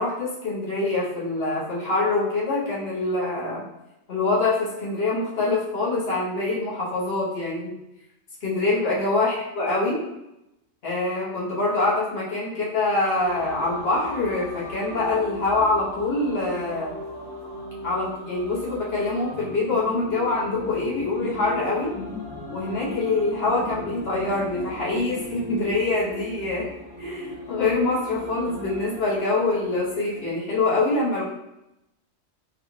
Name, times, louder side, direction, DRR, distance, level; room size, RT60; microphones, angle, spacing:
voice 1, 0.0-3.6 4.1-7.7 8.4-10.0 10.8-17.0 17.8-21.9 22.5-26.7 27.0-31.2, left 2 dB, 55° left, -6 dB, 1.2 m, -25 dB
sound 1, 13.1-30.4, left 1 dB, 75° right, 1.3 m, -39 dB
sound 2, 19.3-26.0, left 3 dB, 85° left, 1.5 m, -39 dB
3.7 x 2.3 x 3.1 m, 0.90 s
omnidirectional pair, 1.3 m